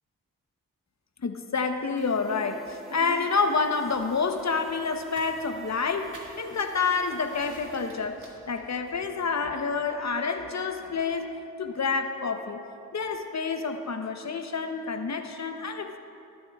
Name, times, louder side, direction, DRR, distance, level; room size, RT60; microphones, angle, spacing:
voice 1, 1.2-11.3 11.6-12.6 12.9-16.0, left 4 dB, 50° left, 6 dB, 0.9 m, -28 dB
sound 1, 2.0-7.9, left 1 dB, ahead, 2.6 m, -49 dB
sound 2, 3.9-9.1, right 2 dB, 65° right, 2.3 m, -51 dB
20.0 x 9.4 x 2.4 m, 2.6 s
cardioid pair, 50°, 34 cm